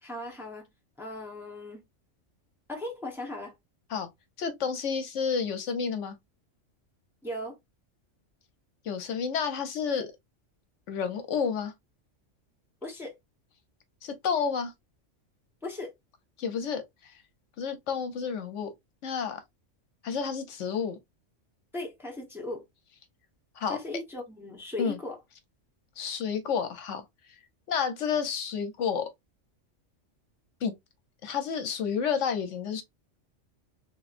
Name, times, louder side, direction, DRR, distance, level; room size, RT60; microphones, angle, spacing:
voice 1, 0.0-0.7 1.0-1.8 2.7-3.5 7.2-7.6 12.8-13.2 15.6-15.9 21.7-22.6 23.7-25.2, left 1 dB, ahead, 0.9 m, -37 dB
voice 2, 4.4-6.2 8.8-10.1 10.9-11.7 14.0-14.7 16.4-16.8 17.6-18.7 19.0-19.4 20.0-21.0 23.6-23.8 24.8-25.0 26.0-27.0 27.7-29.1 30.6-30.7 31.2-32.8, left 6 dB, 75° left, 1.0 m, -30 dB
3.5 x 3.0 x 2.4 m
omnidirectional pair, 1.3 m